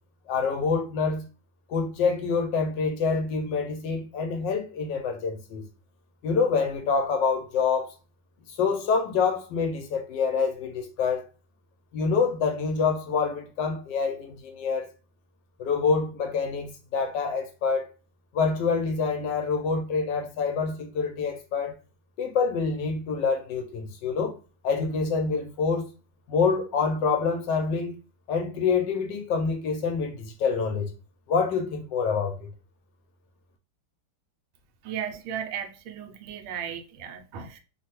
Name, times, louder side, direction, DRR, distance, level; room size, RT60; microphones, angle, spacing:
voice 1, 0.3-1.2 1.7-5.6 6.2-7.9 8.5-11.2 11.9-14.9 15.6-17.9 18.3-21.7 22.2-24.4 24.6-25.8 26.3-27.9 28.3-30.9 31.3-32.5, left 5 dB, 75° left, 1.1 m, -26 dB
voice 2, 34.8-37.6, right 8 dB, 90° right, 1.4 m, -35 dB
3.2 x 2.2 x 2.9 m
omnidirectional pair, 2.2 m